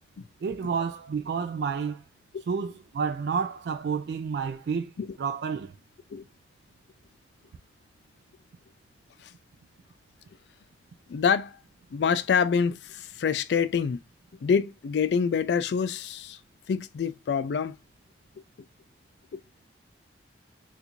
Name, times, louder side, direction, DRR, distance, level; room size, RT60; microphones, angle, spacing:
voice 1, 0.4-2.0 2.5-4.9 5.2-5.7, right 6 dB, 65° right, 0.3 m, -30 dB
voice 2, 11.1-11.6 11.9-14.0 14.4-16.4 16.7-17.8 19.3-19.4, left 6 dB, 65° left, 0.3 m, -26 dB
4.4 x 2.5 x 2.4 m
head